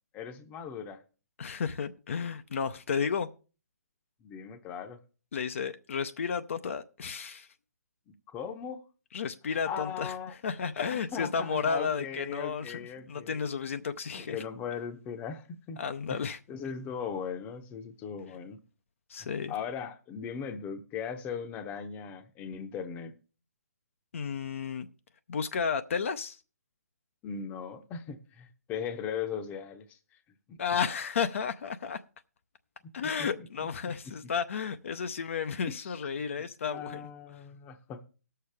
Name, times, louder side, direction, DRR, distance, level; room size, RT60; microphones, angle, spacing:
voice 1, 0.1-1.0 4.2-5.0 8.1-8.8 9.7-10.3 11.1-13.5 14.2-15.8 16.1-16.2 16.5-18.6 19.5-23.1 27.2-30.0 30.5-30.6 32.8-33.7 34.0-34.3 35.7-36.0 36.7-38.0, left 7 dB, 20° left, 0.8 m, -38 dB
voice 2, 1.4-3.3 5.3-7.5 9.1-10.1 10.4-12.8 13.1-14.4 15.8-16.4 19.1-19.5 24.1-24.9 25.3-26.4 30.6-32.0 32.9-37.1, left 6 dB, 55° left, 0.6 m, -32 dB
19.0 x 6.7 x 3.4 m
figure-of-eight pair, 135°, 9 cm